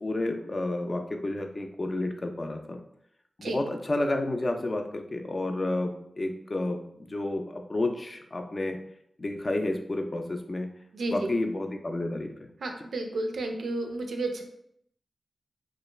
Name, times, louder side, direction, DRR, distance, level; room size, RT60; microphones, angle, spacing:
voice 1, 0.0-2.8 3.4-8.8 9.2-10.7 11.1-12.5, left 2 dB, 45° left, 4 dB, 0.4 m, -30 dB
voice 2, 10.9-11.3 12.6-14.4, right 2 dB, 90° right, 4 dB, 0.3 m, -31 dB
2.4 x 2.2 x 3.0 m, 0.71 s
cardioid pair, 45°, 0 cm